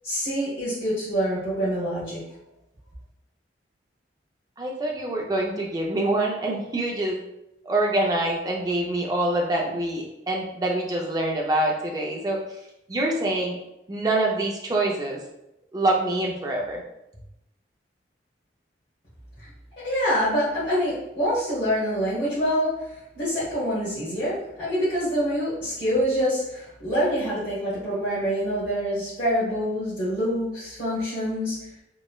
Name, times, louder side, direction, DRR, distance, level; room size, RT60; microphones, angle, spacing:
voice 1, 0.0-2.2 19.4-19.5 19.8-31.5, equal, 50° left, -11 dB, 1.1 m, -26 dB
voice 2, 4.6-7.2 7.6-12.4 12.9-13.6 13.9-15.2 15.7-16.8, right 2 dB, 20° right, -1 dB, 0.3 m, -25 dB
3.0 x 2.0 x 2.2 m, 0.87 s
head